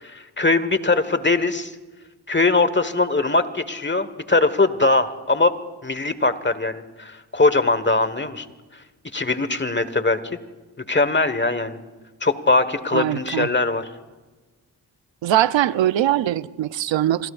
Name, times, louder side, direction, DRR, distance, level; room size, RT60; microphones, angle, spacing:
voice 1, 0.0-1.7 2.3-5.5 5.8-8.5 9.1-10.2 10.9-11.8 12.2-13.9, left 3 dB, 25° left, 1.4 m, -21 dB
voice 2, 12.9-13.5 15.2-17.3, right 12 dB, 80° right, 0.6 m, -21 dB
26.5 x 21.5 x 2.5 m
cardioid pair, 40°, 44 cm